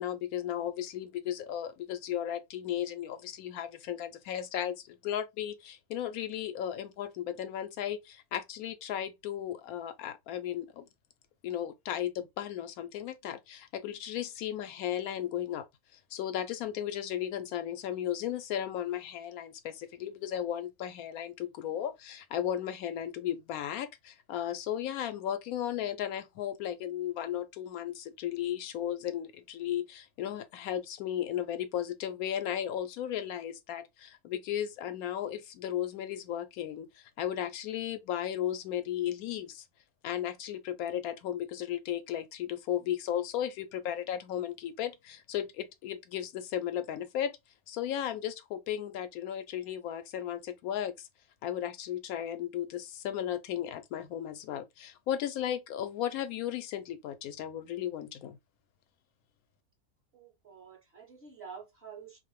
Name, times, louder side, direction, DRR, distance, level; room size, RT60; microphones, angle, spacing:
voice 1, 0.0-10.9 11.4-15.7 15.9-39.6 40.0-47.4 47.7-51.1 51.4-58.4, left 10 dB, 80° left, 1.0 m, -35 dB
voice 2, 60.1-62.2, right 6 dB, 55° right, 0.9 m, -48 dB
2.6 x 2.0 x 2.9 m
omnidirectional pair, 1.5 m